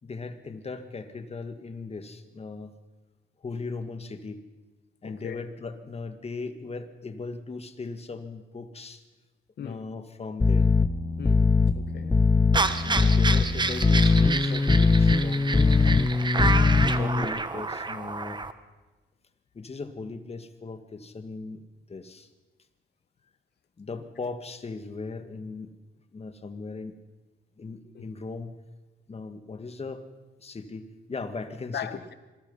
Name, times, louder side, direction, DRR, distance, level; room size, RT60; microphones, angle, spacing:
voice 1, 0.0-2.7 3.4-4.4 5.0-9.0 9.6-10.7 12.8-16.1 16.9-18.4 19.5-22.3 23.8-25.7 26.1-27.0 27.6-28.6 29.1-30.1 30.4-31.9, left 3 dB, 30° left, 2.1 m, -38 dB
voice 2, 5.0-5.4 9.6-9.8 11.2-11.5 11.7-12.3 27.9-28.1 31.7-32.1, left 8 dB, 55° left, 1.6 m, -38 dB
sound 1, 10.4-17.3, left 3 dB, 15° left, 0.6 m, -21 dB
sound 2, 12.5-18.5, right 3 dB, 20° right, 1.4 m, -29 dB
26.0 x 20.0 x 5.7 m
cardioid pair, 90°, 20 cm